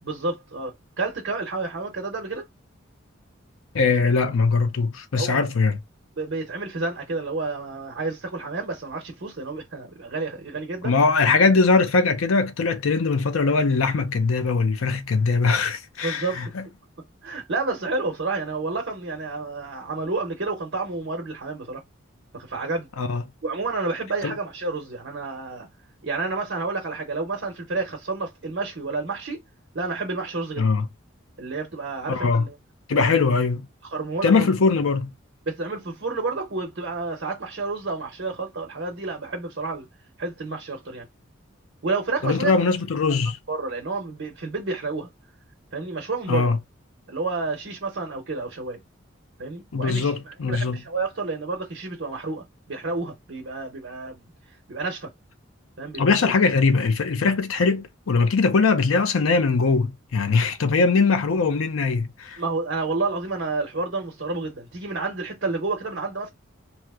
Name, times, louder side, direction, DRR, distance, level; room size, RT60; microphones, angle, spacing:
voice 1, 0.0-2.5 5.2-5.4 6.2-10.9 16.0-16.4 17.2-21.8 22.3-22.9 23.4-25.7 26.0-29.4 29.7-30.7 31.4-32.5 32.9-33.2 33.9-34.5 35.5-39.9 40.2-41.1 41.8-42.6 43.5-45.1 45.7-46.5 47.1-48.8 49.4-54.2 54.7-55.1 55.8-56.3 62.4-66.3, right 3 dB, 60° right, 0.8 m, -30 dB
voice 2, 3.7-5.8 10.8-16.6 23.0-23.2 24.2-24.4 30.6-30.9 32.1-32.4 32.9-33.7 34.2-35.1 42.2-43.4 46.3-46.6 49.7-50.8 56.0-62.4, left 4 dB, 85° left, 0.6 m, -21 dB
3.0 x 2.1 x 3.4 m
head